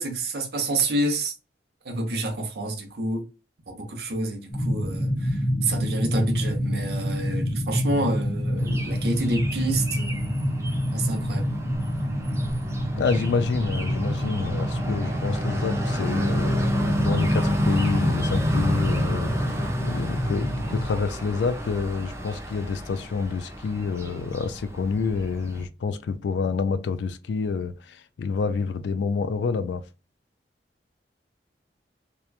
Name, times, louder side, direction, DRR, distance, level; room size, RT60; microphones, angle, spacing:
voice 1, 0.0-1.3 1.8-3.2 3.7-10.3 10.9-11.6, right 2 dB, 65° right, 0.8 m, -28 dB
sound 1, 4.5-20.8, equal, 30° left, 1.0 m, -27 dB
sound 2, 8.6-25.6, equal, 15° right, 0.4 m, -30 dB
voice 2, 12.9-29.8, left 5 dB, 85° left, 0.3 m, -28 dB
2.9 x 2.2 x 2.3 m
head